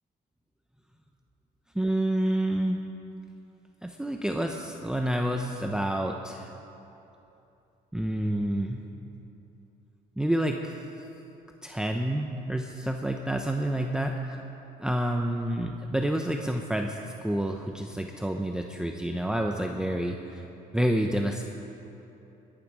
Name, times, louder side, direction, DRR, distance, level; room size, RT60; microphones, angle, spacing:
voice 1, 1.7-2.8 3.8-6.5 7.9-8.8 10.2-10.8 11.6-14.4 14.8-20.4 20.7-21.4, right 1 dB, 5° right, 3 dB, 0.7 m, -28 dB
21.0 x 11.0 x 4.9 m, 2.9 s
cardioid pair, 110°, 17 cm